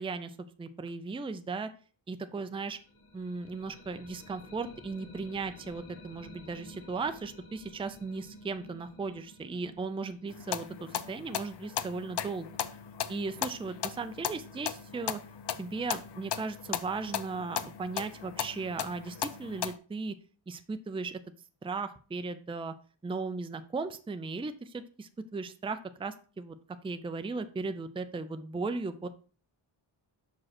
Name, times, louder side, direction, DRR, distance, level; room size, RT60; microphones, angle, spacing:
voice 1, 0.0-1.7 2.1-2.8 3.1-12.5 13.1-15.2 15.6-20.2 20.5-21.2 21.6-22.7 23.0-26.6 26.8-29.1, right 4 dB, 10° right, 10 dB, 0.4 m, -37 dB
sound 1, 2.6-12.4, left 2 dB, 85° left, 2.2 m, -53 dB
sound 2, 10.3-19.7, left 9 dB, 55° left, 0.6 m, -37 dB
6.1 x 5.1 x 5.9 m, 0.39 s
wide cardioid pair, 155°, 49 cm